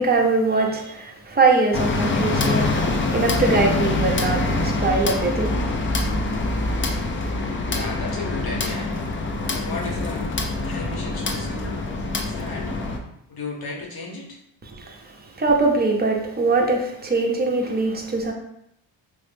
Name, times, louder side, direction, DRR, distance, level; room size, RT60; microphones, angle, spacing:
voice 1, 0.0-2.7 3.1-5.5 14.7-18.3, right 3 dB, 20° right, 0 dB, 0.6 m, -22 dB
sound 1, 1.7-13.0, left 2 dB, 30° left, 0.4 m, -25 dB
voice 2, 7.7-9.0 9.5-10.3 10.6-12.7 13.3-14.4, left 3 dB, 50° left, -2 dB, 0.9 m, -34 dB
3.0 x 2.0 x 3.2 m, 0.77 s
cardioid pair, 80°, 46 cm